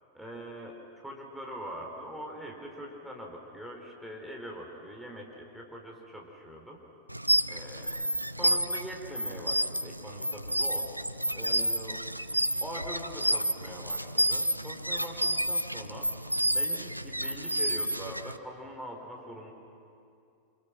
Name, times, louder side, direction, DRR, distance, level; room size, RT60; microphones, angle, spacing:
voice 1, 0.1-6.8 7.5-8.0 8.4-10.9 11.3-12.0 12.6-16.1 16.5-19.5, equal, ahead, -1 dB, 3.9 m, -43 dB
sound 1, 7.1-18.4, equal, 90° right, 0.6 m, -30 dB
28.5 x 27.0 x 6.1 m, 2.5 s
figure-of-eight pair, 90°, 0 cm